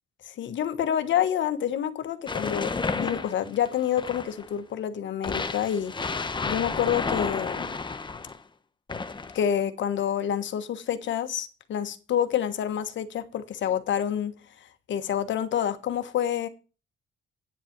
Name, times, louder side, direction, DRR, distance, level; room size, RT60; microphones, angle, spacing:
voice 1, 0.2-7.7 9.3-14.3 14.9-16.5, left 9 dB, 70° left, 1.3 m, -28 dB
sound 1, 2.3-4.5 5.2-8.4 8.9-9.5, left 4 dB, 25° left, 1.0 m, -31 dB
9.3 x 7.6 x 6.0 m
cardioid pair, 90°, 20 cm